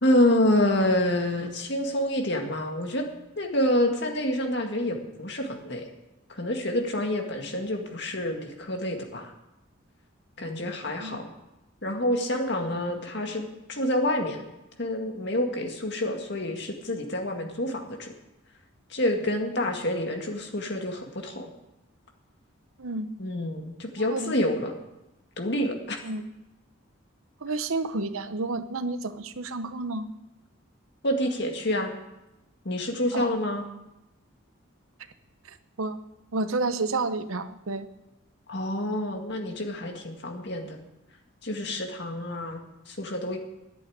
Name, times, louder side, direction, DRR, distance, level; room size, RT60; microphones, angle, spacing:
voice 1, 0.0-3.0 3.4-5.9 6.3-9.3 10.4-11.3 11.8-14.4 14.8-18.1 18.9-21.5 23.2-24.7 25.4-26.0 31.0-31.9 32.7-33.6 38.5-40.8 41.4-42.6 42.9-43.4, left 1 dB, 55° left, 3 dB, 2.0 m, -27 dB
voice 2, 22.8-23.1 24.1-24.3 26.0-26.2 27.4-30.1 33.1-33.3 35.4-36.0 36.3-37.9, right 3 dB, 90° right, 11 dB, 0.9 m, -30 dB
10.5 x 8.5 x 8.8 m, 0.96 s
head